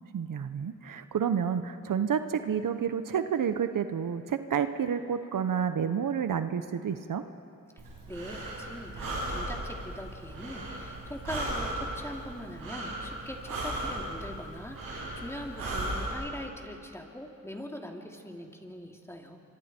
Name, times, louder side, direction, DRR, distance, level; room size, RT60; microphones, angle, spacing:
voice 1, 0.1-7.2, right 7 dB, 70° right, 10 dB, 0.9 m, -30 dB
Breathing, 7.8-16.1, right 1 dB, 90° right, 6.0 m, -36 dB
voice 2, 8.1-19.4, left 1 dB, 10° left, 1 dB, 2.8 m, -42 dB
26.0 x 24.5 x 4.4 m, 2.7 s
cardioid pair, 50°, 34 cm